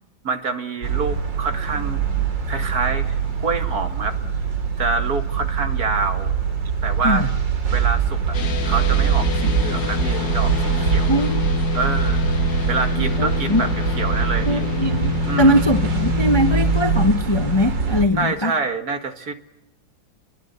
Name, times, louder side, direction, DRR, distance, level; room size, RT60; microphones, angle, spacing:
voice 1, 0.2-2.0 2.5-3.1 3.4-4.2 4.8-6.3 6.8-7.3 7.7-8.4 8.6-11.2 11.7-12.3 12.7-14.7 15.2-15.6 18.1-19.3, right 4 dB, 50° right, 2.2 m, -26 dB
sound 1, 0.8-18.1, right 6 dB, 70° right, 3.2 m, -23 dB
sound 2, 8.3-17.1, left 9 dB, 65° left, 2.2 m, -27 dB
voice 2, 11.1-11.4 13.0-13.6 14.4-18.5, equal, 20° left, 0.9 m, -21 dB
29.0 x 22.5 x 8.1 m
omnidirectional pair, 2.1 m